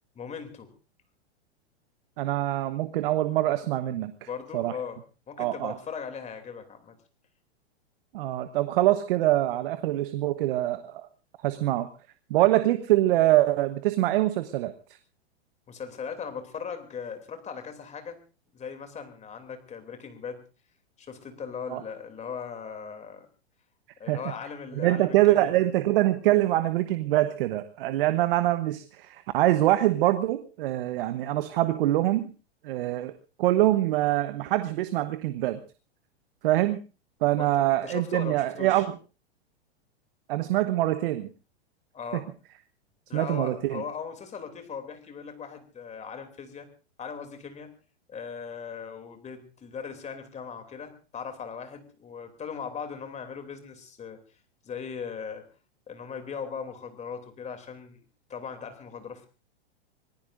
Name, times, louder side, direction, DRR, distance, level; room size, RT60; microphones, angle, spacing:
voice 1, 0.2-0.7 4.3-5.0 5.3-7.0 15.7-18.2 18.5-20.4 21.0-23.3 24.0-25.7 37.4-37.5 37.8-38.8 41.9-42.3 43.1-46.7 47.0-47.7 48.1-54.2 54.6-55.4 55.9-58.0 58.3-59.3, left 6 dB, 20° left, 7 dB, 2.9 m, -39 dB
voice 2, 2.2-4.1 4.5-4.8 5.4-5.7 8.1-11.1 11.4-11.9 12.3-14.7 21.7-21.8 24.1-24.2 24.8-32.3 32.6-35.6 36.4-36.8 37.2-39.0 40.3-41.3 42.1-42.2 43.1-43.8, right 15 dB, 55° right, 11 dB, 1.1 m, -24 dB
25.5 x 18.5 x 2.6 m, 0.33 s
hypercardioid pair, 115°, 33 cm